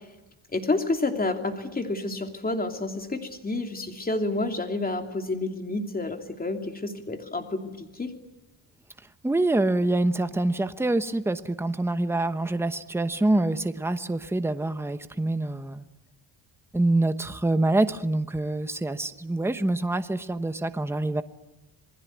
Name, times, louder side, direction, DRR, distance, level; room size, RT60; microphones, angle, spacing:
voice 1, 0.5-8.1, left 2 dB, 20° left, 5 dB, 2.9 m, -29 dB
voice 2, 9.2-15.8 16.7-21.2, right 2 dB, 5° right, 10 dB, 1.0 m, -25 dB
27.5 x 20.5 x 9.4 m, 1.1 s
wide cardioid pair, 150°, 46 cm